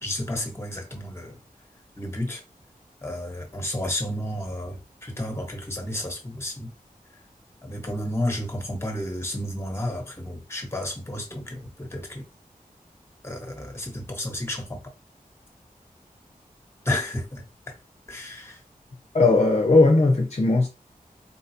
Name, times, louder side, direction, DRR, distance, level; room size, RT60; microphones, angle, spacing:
voice 1, 0.0-1.4 2.0-2.4 3.0-6.7 7.6-12.2 13.2-14.8 16.8-17.7 18.1-18.6, left 1 dB, 15° left, 1.1 m, -31 dB
voice 2, 19.1-20.7, left 3 dB, 45° left, 0.6 m, -18 dB
4.0 x 2.3 x 2.8 m
wide cardioid pair, 60°, 15 cm